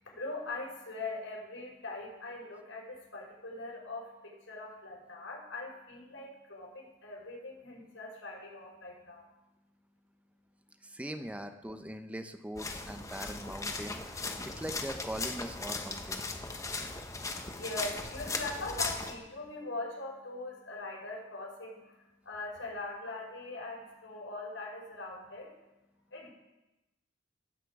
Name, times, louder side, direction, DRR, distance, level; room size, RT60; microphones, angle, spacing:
voice 1, 0.1-9.3 17.0-25.5 26.1-26.3, left 2 dB, 85° left, -3 dB, 5.2 m, -42 dB
voice 2, 10.8-16.2, right 1 dB, 5° right, 8 dB, 0.7 m, -41 dB
sound 1, 12.6-19.2, left 3 dB, 15° left, 0.9 m, -38 dB
18.0 x 8.4 x 4.8 m, 1.0 s
head